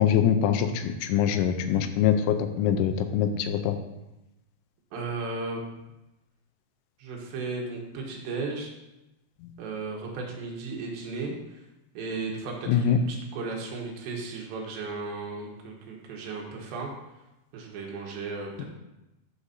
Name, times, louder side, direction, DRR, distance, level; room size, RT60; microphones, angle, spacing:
voice 1, 0.0-3.8 9.4-9.5 12.7-13.0, left 9 dB, 85° left, 8 dB, 3.1 m, -24 dB
voice 2, 4.9-5.6 7.0-8.7 9.6-11.7 12.0-16.9 17.5-18.7, right 3 dB, 75° right, -1 dB, 3.4 m, -35 dB
13.0 x 6.5 x 2.7 m, 0.95 s
omnidirectional pair, 5.4 m